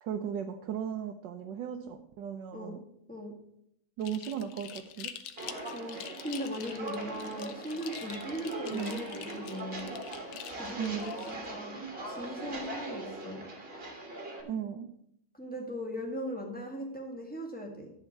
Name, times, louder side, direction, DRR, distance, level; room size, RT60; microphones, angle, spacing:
voice 1, 0.0-2.8 4.0-5.1 8.7-9.1 10.8-11.1 14.4-14.9, right 8 dB, 70° right, 4 dB, 1.3 m, -36 dB
sound 1, 4.0-11.4, left 9 dB, 75° left, 1.4 m, -46 dB
Walk footsteps, 5.4-14.4, right 2 dB, 30° right, 1.6 m, -41 dB
voice 2, 5.7-9.9 10.5-11.8 12.0-13.4 15.3-17.9, equal, 5° left, 0 dB, 1.6 m, -39 dB
11.0 x 4.5 x 7.2 m, 0.73 s
omnidirectional pair, 2.2 m